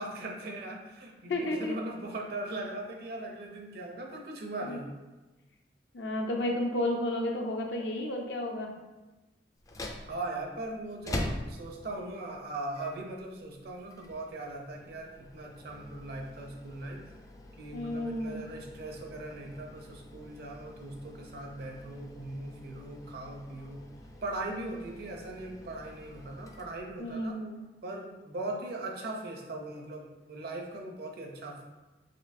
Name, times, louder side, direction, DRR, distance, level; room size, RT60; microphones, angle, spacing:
voice 1, 0.0-4.9 10.0-17.1 17.6-23.9 24.2-27.4 27.8-31.6, right 2 dB, 60° right, 1 dB, 0.6 m, -39 dB
voice 2, 1.3-1.8 4.6-4.8 5.9-8.7 17.7-18.4 27.0-27.6, left 1 dB, 75° left, 2 dB, 0.6 m, -32 dB
sound 1, 9.5-27.3, left 1 dB, 20° left, 0.3 m, -45 dB
4.3 x 3.0 x 2.6 m, 1.1 s
head